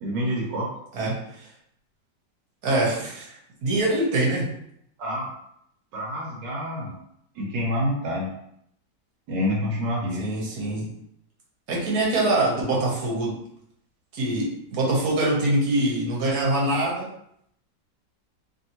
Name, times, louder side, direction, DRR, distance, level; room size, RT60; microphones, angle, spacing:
voice 1, 0.0-0.7 5.0-5.3 5.9-7.0 7.3-8.3 9.3-10.2, equal, 85° right, -2 dB, 1.4 m, -27 dB
voice 2, 0.9-1.5 2.6-3.3 3.6-4.5 10.2-10.9 11.7-13.4 14.1-17.1, right 2 dB, 65° right, -3 dB, 1.3 m, -24 dB
3.0 x 2.7 x 2.8 m, 0.73 s
omnidirectional pair, 1.9 m